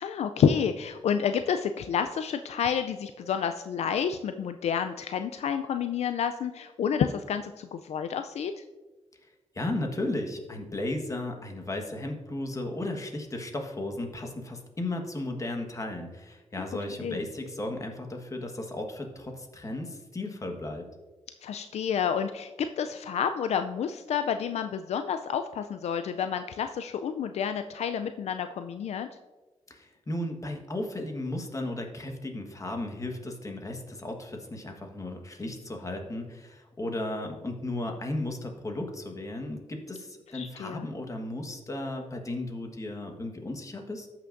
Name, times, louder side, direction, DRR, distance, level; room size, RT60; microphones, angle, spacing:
voice 1, 0.0-8.6 17.0-17.2 21.4-29.1 40.3-40.9, left 7 dB, 70° left, 9 dB, 0.4 m, -29 dB
voice 2, 9.5-20.9 29.7-44.1, left 1 dB, 30° left, 3 dB, 1.4 m, -35 dB
14.0 x 5.9 x 2.6 m, 1.2 s
cardioid pair, 90°, 11 cm